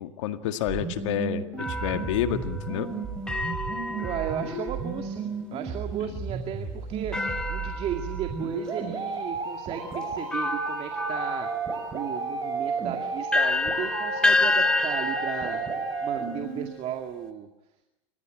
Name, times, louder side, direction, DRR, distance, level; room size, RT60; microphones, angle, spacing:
voice 1, 0.0-2.9, left 11 dB, 75° left, 8 dB, 1.9 m, -29 dB
sound 1, 0.7-16.7, right 4 dB, 25° right, 7.0 m, -33 dB
sound 2, 1.6-5.1 7.1-8.6 9.3-9.4 10.3-17.2, left 2 dB, 5° left, 2.5 m, -30 dB
voice 2, 4.0-11.5 11.9-15.7 16.0-17.5, right 9 dB, 40° right, 5 dB, 2.2 m, -35 dB
29.5 x 16.0 x 9.0 m, 0.98 s
supercardioid pair, 120°, 16 cm